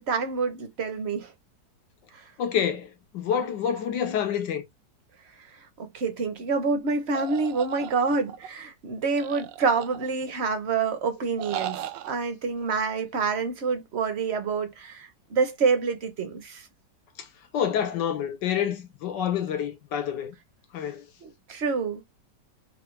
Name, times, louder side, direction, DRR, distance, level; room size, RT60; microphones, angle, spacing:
voice 1, 0.1-1.3 2.1-2.2 5.8-16.7 21.2-22.0, right 4 dB, 50° right, 0.9 m, -27 dB
voice 2, 2.4-4.6 17.5-20.3 20.7-21.0, left 8 dB, 85° left, 1.6 m, -28 dB
sound 1, 7.1-8.5 9.2-10.3 11.4-12.1, right 11 dB, 85° right, 1.2 m, -36 dB
4.6 x 2.4 x 3.1 m
omnidirectional pair, 1.9 m